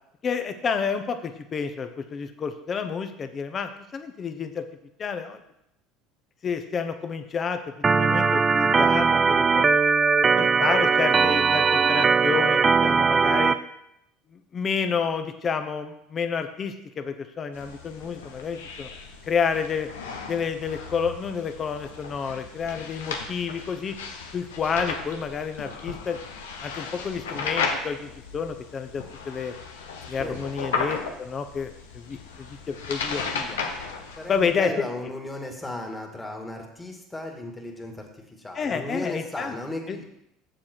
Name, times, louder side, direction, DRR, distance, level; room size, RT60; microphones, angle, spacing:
voice 1, 0.2-4.6 5.0-5.4 6.4-7.6 7.9-9.7 10.4-13.6 14.3-18.9 19.2-19.9 20.3-24.0 24.3-26.2 26.6-29.5 30.1-33.6 34.3-34.7 38.5-39.5 39.9-40.0, left 6 dB, 35° left, 8 dB, 1.0 m, -29 dB
Organ, 7.8-13.5, right 5 dB, 25° right, 0.5 m, -20 dB
sound 1, 17.5-34.5, left 5 dB, 90° left, 1.0 m, -35 dB
voice 2, 34.2-38.1 38.4-40.0, left 1 dB, 15° left, 2 dB, 2.0 m, -35 dB
7.6 x 7.1 x 4.6 m, 0.81 s
hypercardioid pair, 80°, 0 cm